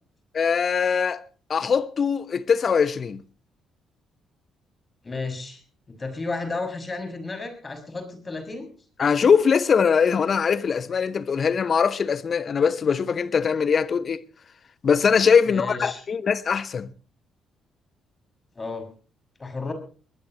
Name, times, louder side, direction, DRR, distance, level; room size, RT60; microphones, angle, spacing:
voice 1, 0.3-1.2 1.5-3.2 9.0-14.2 14.8-16.9, left 6 dB, 45° left, 1.1 m, -21 dB
voice 2, 5.0-5.6 5.9-8.7 15.4-16.0 18.5-18.9 19.4-19.7, left 3 dB, 30° left, 6.5 m, -32 dB
20.5 x 20.5 x 3.1 m
figure-of-eight pair, 45°, 0 cm